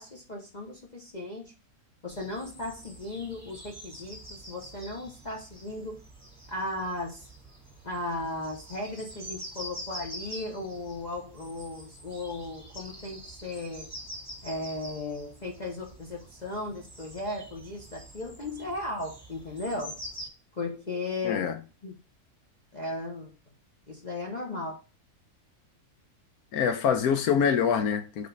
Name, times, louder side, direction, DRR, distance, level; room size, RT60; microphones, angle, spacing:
voice 1, 0.0-1.5 2.0-6.0 6.5-7.3 7.8-13.9 14.4-20.0 20.6-21.5 21.8-22.0 22.7-23.4 23.9-24.8, left 2 dB, 30° left, 1.1 m, -36 dB
sound 1, 2.1-20.3, equal, 10° right, 2.1 m, -46 dB
voice 2, 21.2-21.5 26.5-28.3, left 7 dB, 75° left, 1.1 m, -25 dB
5.3 x 4.0 x 5.2 m
omnidirectional pair, 1.6 m